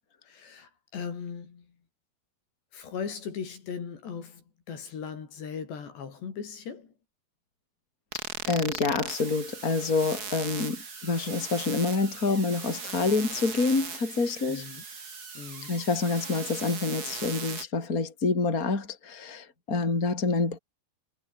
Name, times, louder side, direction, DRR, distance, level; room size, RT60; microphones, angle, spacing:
voice 1, 0.3-1.7 2.7-6.9 14.5-14.8 15.3-15.7, left 6 dB, 65° left, 6.4 m, -38 dB
sound 1, 8.1-17.6, right 5 dB, 30° right, 1.8 m, -38 dB
voice 2, 8.5-14.6 15.6-20.6, left 3 dB, 20° left, 4.5 m, -27 dB
omnidirectional pair, 5.4 m